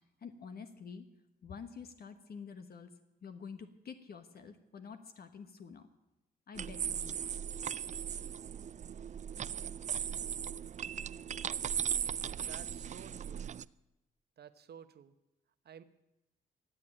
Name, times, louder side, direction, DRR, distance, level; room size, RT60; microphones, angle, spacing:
voice 1, 0.2-1.1 1.4-2.9 3.2-5.9 6.5-7.2, left 6 dB, 60° left, 8 dB, 1.2 m, -48 dB
sound 1, 6.6-13.6, right 8 dB, 40° right, 0.4 m, -38 dB
voice 2, 12.4-13.5 14.4-15.1 15.6-15.8, right 8 dB, 65° right, 11 dB, 1.0 m, -53 dB
15.0 x 8.3 x 8.8 m, 0.93 s
supercardioid pair, 65°, 18 cm